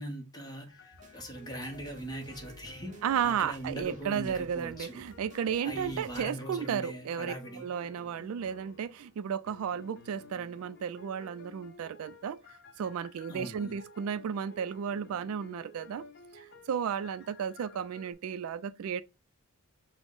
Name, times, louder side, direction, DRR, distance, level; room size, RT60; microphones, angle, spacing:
voice 1, 0.0-5.0 5.6-7.7 13.3-13.8, right 1 dB, 20° left, 0.9 m, -41 dB
sound 1, 0.7-3.6 3.8-9.2 9.5-18.1, left 2 dB, 50° left, 0.6 m, -53 dB
sound 2, 0.9-6.2, right 1 dB, 35° right, 0.7 m, -55 dB
voice 2, 3.0-16.0 16.3-19.0, right 8 dB, 70° right, 0.3 m, -34 dB
5.9 x 2.1 x 3.7 m
head